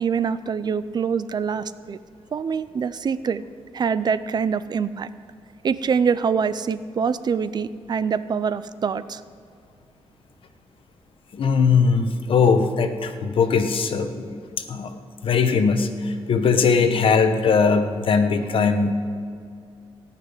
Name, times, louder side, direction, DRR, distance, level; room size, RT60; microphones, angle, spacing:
voice 1, 0.0-2.0 2.3-3.4 3.7-5.1 5.6-9.2, right 6 dB, 45° right, 15 dB, 0.4 m, -24 dB
voice 2, 11.3-14.4 14.7-14.9 15.2-18.9, left 5 dB, 60° left, 8 dB, 1.1 m, -20 dB
17.0 x 5.9 x 9.5 m, 2.4 s
wide cardioid pair, 130°, 10 cm